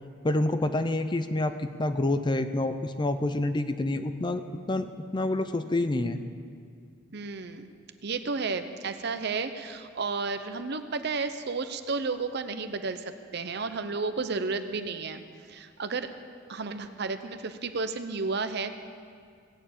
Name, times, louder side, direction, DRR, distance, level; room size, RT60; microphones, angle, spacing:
voice 1, 0.2-4.4 4.7-4.9 5.1-6.2, left 2 dB, 25° left, 10 dB, 0.5 m, -27 dB
voice 2, 7.1-7.7 8.0-15.2 15.5-16.1 16.5-18.8, right 4 dB, 60° right, 10 dB, 0.7 m, -32 dB
17.0 x 7.0 x 8.7 m, 2.1 s
head